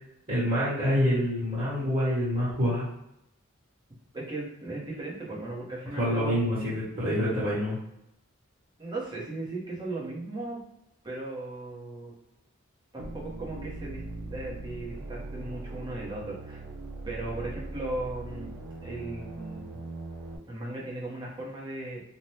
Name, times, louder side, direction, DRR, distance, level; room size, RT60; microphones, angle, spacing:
voice 1, 0.3-2.9 6.0-7.8, equal, 45° right, -11 dB, 1.3 m, -26 dB
voice 2, 4.1-6.4 8.8-10.6 11.0-12.1 12.9-14.0 14.3-16.6 17.1-18.5 18.8-19.8 20.5-22.0, right 2 dB, 20° right, -5 dB, 0.7 m, -37 dB
sound 1, 13.0-20.4, right 2 dB, 85° right, 0.4 m, -40 dB
2.6 x 2.1 x 3.1 m, 0.81 s
head